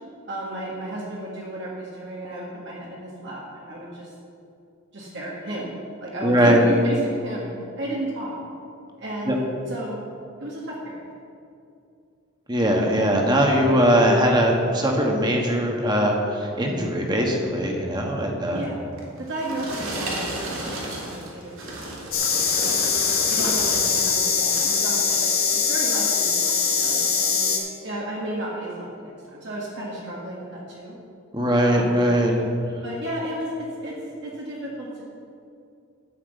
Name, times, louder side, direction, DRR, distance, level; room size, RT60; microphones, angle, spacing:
voice 1, 0.3-4.1 4.9-5.7 6.0-7.5 7.8-8.3 9.0-10.1 10.4-11.0 13.8-14.0 18.5-21.5 21.8-22.8 23.3-27.4 27.8-31.0 31.6-32.1 32.8-35.0, right 1 dB, 55° right, -5 dB, 1.7 m, -33 dB
voice 2, 6.2-6.7 9.3-9.4 12.5-18.6 31.3-32.3, equal, 20° right, 1 dB, 1.4 m, -20 dB
sound 1, 19.0-24.1 24.4-24.9 25.4-25.6, right 1 dB, 80° right, 2.5 m, -33 dB
sound 2, 22.1-27.6, left 6 dB, 85° left, 2.3 m, -22 dB
11.5 x 5.9 x 8.2 m, 2.6 s
head